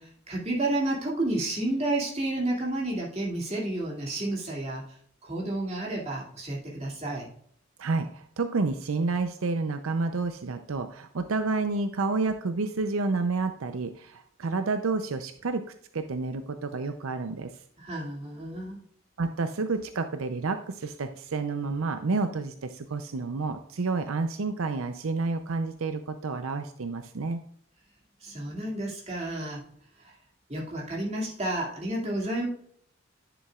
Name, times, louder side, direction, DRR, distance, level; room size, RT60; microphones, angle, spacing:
voice 1, 0.0-4.8 5.2-7.3 17.8-18.8 28.2-29.6 30.0-30.2 30.5-32.5, right 1 dB, 30° right, -3 dB, 2.4 m, -31 dB
voice 2, 7.8-15.6 15.9-17.5 19.2-27.4, right 3 dB, 80° right, 9 dB, 0.6 m, -29 dB
10.5 x 7.0 x 2.4 m, 0.65 s
head